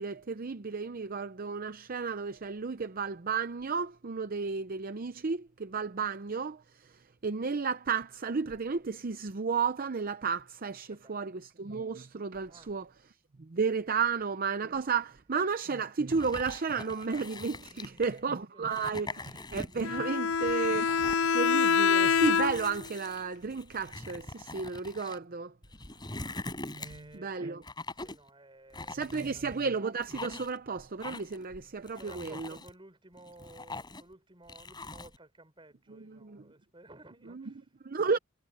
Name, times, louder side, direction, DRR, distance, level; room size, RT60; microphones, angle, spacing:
voice 1, 0.0-12.8 13.4-20.9 21.3-25.5 26.7-27.6 28.9-32.6 35.9-36.4 37.3-37.4 37.8-38.2, right 5 dB, 45° right, 0.6 m, -33 dB
voice 2, 10.9-11.4 12.5-12.7 17.6-18.0 18.5-19.4 20.1-20.4 25.9-26.0 26.8-27.6 27.9-29.6 31.9-37.7, right 2 dB, 25° right, 5.7 m, -56 dB
sound 1, 16.1-18.2 18.6-20.0 20.3-21.3 21.9-25.2 25.6-27.1 27.6-28.3 28.7-29.6 30.0-30.6 31.0-31.4 31.9-32.7 33.2-34.1 34.5-35.2, left 2 dB, 20° left, 4.7 m, -43 dB
Bowed string instrument, 19.8-22.8, left 6 dB, 85° left, 0.6 m, -26 dB
head